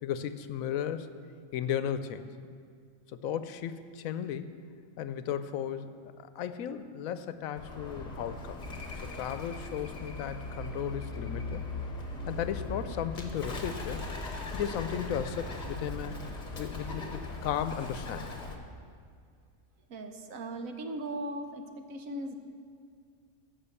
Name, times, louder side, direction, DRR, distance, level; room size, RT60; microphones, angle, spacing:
voice 1, 0.0-1.1 1.5-2.3 3.1-4.6 5.0-6.0 6.4-8.6 9.0-11.6 12.3-14.1 14.5-16.2 16.6-18.3, left 9 dB, 85° left, 11 dB, 1.0 m, -35 dB
Bird, 7.6-18.6, left 2 dB, 35° left, 1.1 m, -39 dB
voice 2, 19.9-22.4, right 1 dB, 85° right, 6 dB, 1.3 m, -38 dB
14.0 x 5.6 x 7.0 m, 2.1 s
omnidirectional pair, 1.4 m